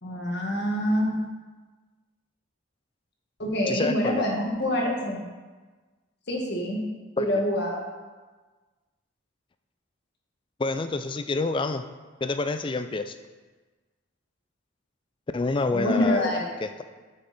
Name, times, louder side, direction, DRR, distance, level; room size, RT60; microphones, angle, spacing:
voice 1, 0.0-1.3 3.4-5.2 6.3-6.8 7.2-7.8 15.7-16.5, left 1 dB, 55° left, -1 dB, 1.6 m, -26 dB
voice 2, 3.7-4.2 7.2-7.3 10.6-11.8 12.2-13.1 15.3-16.8, left 3 dB, 25° left, 9 dB, 0.3 m, -28 dB
7.8 x 6.6 x 4.2 m, 1.3 s
head